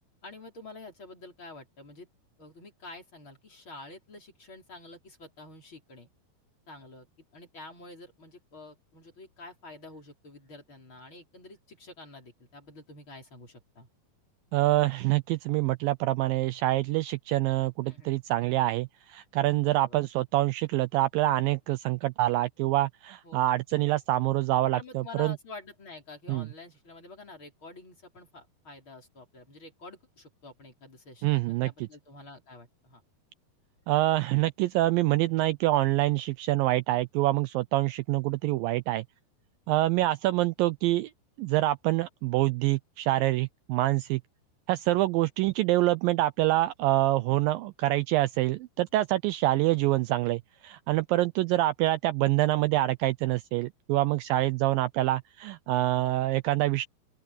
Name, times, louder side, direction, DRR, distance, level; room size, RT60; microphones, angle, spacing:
voice 1, 0.2-2.1 2.4-6.1 6.7-13.9 17.8-18.2 19.6-20.0 23.2-23.4 24.7-33.0, left 2 dB, 30° left, 5.3 m, -48 dB
voice 2, 14.5-25.4 26.3-26.5 31.2-31.7 33.9-39.0 39.7-41.1 41.4-44.2 44.7-56.9, right 16 dB, 85° right, 2.1 m, -26 dB
open air
omnidirectional pair, 4.5 m